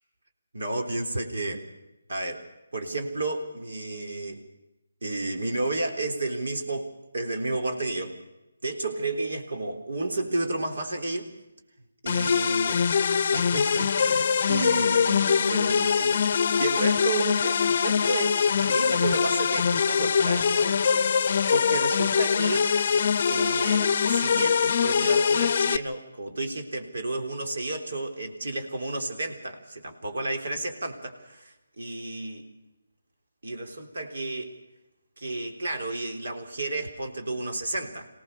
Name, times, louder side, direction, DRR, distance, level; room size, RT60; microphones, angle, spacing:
voice 1, 0.5-1.6 2.1-2.5 2.7-4.4 5.0-8.2 8.6-11.3 12.0-12.8 13.3-20.8 21.5-22.7 23.3-32.5 33.4-34.6 35.2-38.1, right 2 dB, 70° right, 5 dB, 3.7 m, -31 dB
sound 1, 12.1-25.8, left 6 dB, 45° left, 0.7 m, -23 dB
24.0 x 18.0 x 6.7 m, 0.97 s
figure-of-eight pair, 160°, 0 cm